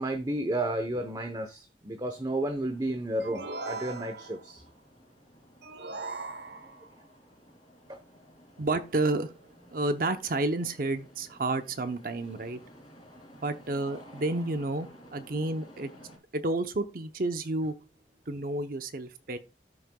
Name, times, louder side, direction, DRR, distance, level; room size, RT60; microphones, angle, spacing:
voice 1, 0.0-4.6 7.9-8.0, right 1 dB, 20° right, 0.8 m, -32 dB
sound 1, 2.1-16.2, equal, 25° left, 3.9 m, -54 dB
sound 2, 3.2-4.5 5.6-6.9, right 3 dB, 75° right, 1.0 m, -39 dB
voice 2, 8.6-9.4 9.7-12.6 13.4-15.9 16.3-17.8 18.3-19.4, right 2 dB, 50° right, 0.7 m, -30 dB
13.5 x 6.5 x 2.2 m
head